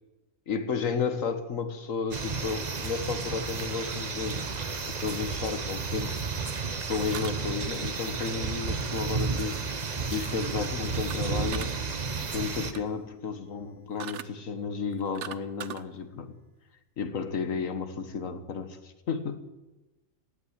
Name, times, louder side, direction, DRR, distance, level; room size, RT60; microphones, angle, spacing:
voice 1, 0.5-6.2 6.9-9.6 10.1-11.8 12.2-16.4 17.0-19.4, left 5 dB, 90° left, 1.7 m, -33 dB
sound 1, 2.1-12.7, right 4 dB, 35° right, 1.0 m, -32 dB
sound 2, 7.1-7.8 11.1-11.7 12.4-12.9 14.0-14.3 14.9-15.8, right 10 dB, 65° right, 1.0 m, -40 dB
16.5 x 8.7 x 9.6 m
omnidirectional pair, 1.3 m